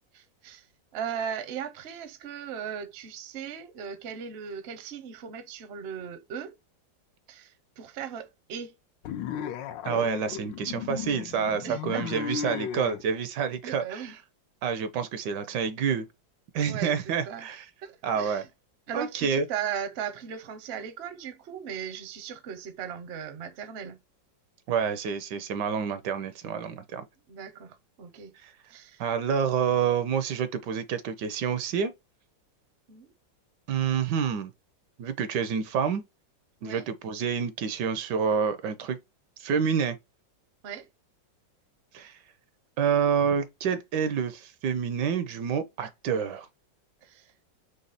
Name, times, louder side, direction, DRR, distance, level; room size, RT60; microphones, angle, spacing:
voice 1, 0.1-0.7 0.9-6.5 7.3-8.7 11.6-12.0 13.6-14.1 16.7-17.5 17.8-18.5 18.9-24.0 27.3-28.3 28.7-29.0 32.9-33.1 36.6-36.9 40.6-40.9 42.0-42.1 47.0-47.3, right 8 dB, 55° right, 0.7 m, -38 dB
sound 1, 9.0-13.0, left 9 dB, 75° left, 1.2 m, -35 dB
voice 2, 9.8-14.1 14.6-16.1 16.5-17.6 18.0-18.4 18.9-19.4 24.7-27.1 28.4-28.5 29.0-31.9 33.7-34.5 35.0-36.0 36.6-39.0 39.4-40.0 41.9-42.2 42.8-46.5, right 7 dB, 75° right, 1.2 m, -28 dB
4.1 x 3.3 x 3.9 m
omnidirectional pair, 2.0 m